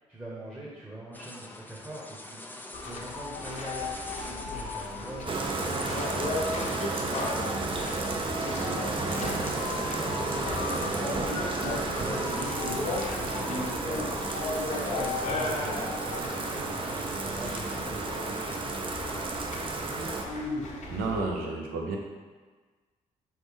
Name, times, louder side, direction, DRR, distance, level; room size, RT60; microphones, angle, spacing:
voice 1, 0.1-2.4 2.8-8.1 8.6-8.8 9.1-10.4 10.8-14.0 14.9-18.6, right 1 dB, 10° right, -6 dB, 1.0 m, -43 dB
sound 1, 1.1-20.7, left 1 dB, 10° left, 0.5 m, -47 dB
sound 2, 2.7-21.2, left 2 dB, 55° left, 0.8 m, -35 dB
Bathtub (filling or washing), 5.3-20.2, right 3 dB, 35° right, 0.6 m, -32 dB
voice 2, 20.9-22.0, right 3 dB, 75° right, 0 dB, 0.7 m, -32 dB
3.9 x 3.2 x 3.6 m, 1.4 s
hypercardioid pair, 50°, 15 cm